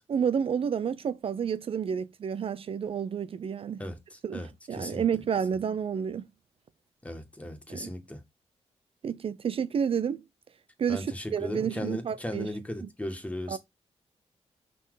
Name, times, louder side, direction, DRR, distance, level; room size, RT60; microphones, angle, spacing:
voice 1, 0.1-3.8 4.2-6.3 7.7-7.9 9.0-10.2 10.8-12.5 12.8-12.9 13.5-13.6, right 7 dB, 55° right, 0.5 m, -30 dB
voice 2, 3.8-4.5 4.8-5.0 7.0-8.2 10.9-13.6, left 1 dB, 10° left, 1.7 m, -36 dB
5.4 x 4.3 x 4.8 m
cardioid pair, 100°, 11 cm